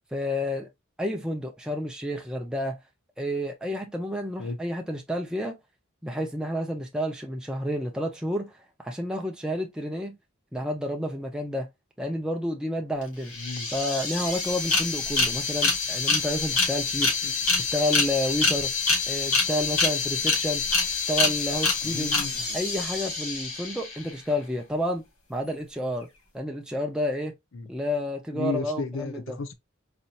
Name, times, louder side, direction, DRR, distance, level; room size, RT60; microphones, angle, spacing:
voice 1, 0.1-0.7 1.0-2.8 3.2-5.6 6.0-8.5 8.8-10.2 10.5-11.7 12.0-13.3 13.7-17.1 17.6-18.7 19.1-20.6 21.1-22.2 22.5-25.0 25.3-26.1 26.3-27.3 27.7-29.4, equal, 5° right, 0.4 m, -30 dB
sound 1, 13.0-13.1 13.3-24.1, left 4 dB, 85° left, 1.8 m, -26 dB
voice 2, 13.3-13.7 17.2-17.5 21.8-22.6 27.5-27.7 28.3-29.5, left 4 dB, 65° left, 0.6 m, -34 dB
4.2 x 2.4 x 2.8 m
head